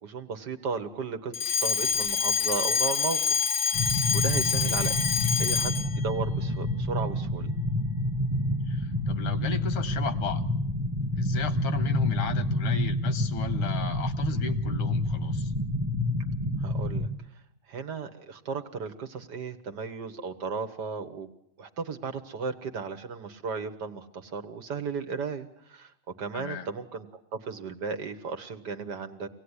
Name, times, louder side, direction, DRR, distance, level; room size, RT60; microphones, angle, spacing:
voice 1, 0.0-3.2 3.6-5.0 5.4-7.5 16.6-17.1 17.7-21.3 21.6-25.9 26.2-29.3, right 5 dB, 55° right, 7 dB, 1.8 m, -35 dB
Alarm, 1.3-6.0, left 6 dB, 45° left, 1.1 m, -26 dB
sound 1, 3.7-17.1, left 1 dB, 10° right, 1.4 m, -28 dB
voice 2, 4.6-5.0 8.7-10.4 11.2-15.5 26.3-26.7, left 6 dB, 85° left, 12 dB, 2.2 m, -35 dB
25.0 x 17.5 x 9.8 m, 0.75 s
omnidirectional pair, 2.3 m